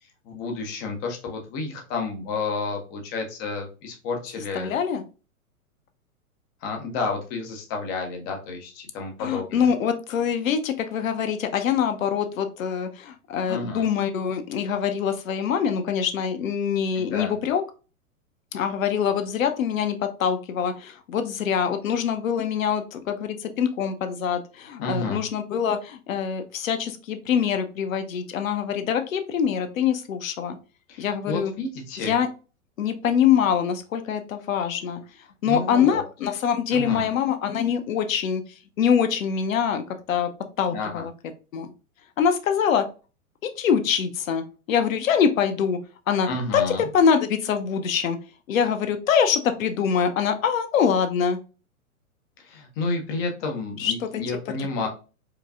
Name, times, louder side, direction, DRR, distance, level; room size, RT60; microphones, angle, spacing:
voice 1, 0.3-4.7 6.6-9.7 13.5-13.8 17.0-17.3 24.8-25.2 30.9-32.2 35.5-36.1 36.7-37.1 40.7-41.1 46.2-46.9 52.4-54.9, left 3 dB, 15° left, 2 dB, 0.4 m, -30 dB
voice 2, 4.5-5.0 9.2-17.6 18.5-30.6 31.0-31.5 32.0-32.3 32.8-35.0 35.4-38.4 38.8-40.3 40.6-41.1 41.5-41.7 42.2-42.9 43.4-45.8 46.1-48.2 48.5-51.4 53.8-54.4, left 7 dB, 65° left, 8 dB, 0.7 m, -24 dB
4.7 x 2.2 x 2.3 m, 0.34 s
figure-of-eight pair, 110°, 44 cm